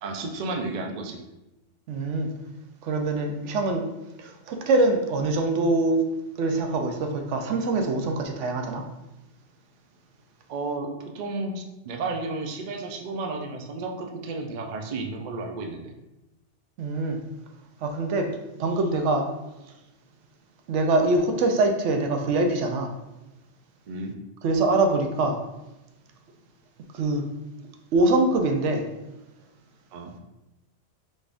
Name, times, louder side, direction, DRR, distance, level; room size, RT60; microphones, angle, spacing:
voice 1, 0.0-1.2 10.5-15.9 23.9-24.1 29.9-30.1, right 3 dB, 55° right, 3 dB, 0.5 m, -32 dB
voice 2, 1.9-2.3 2.8-3.9 4.2-6.0 6.4-8.8 16.8-17.2 17.8-18.3 18.6-19.3 20.7-22.9 24.4-25.4 26.9-27.2 27.9-28.9, right 2 dB, 80° right, 4 dB, 0.9 m, -24 dB
4.2 x 3.4 x 2.5 m, 0.96 s
omnidirectional pair, 1.2 m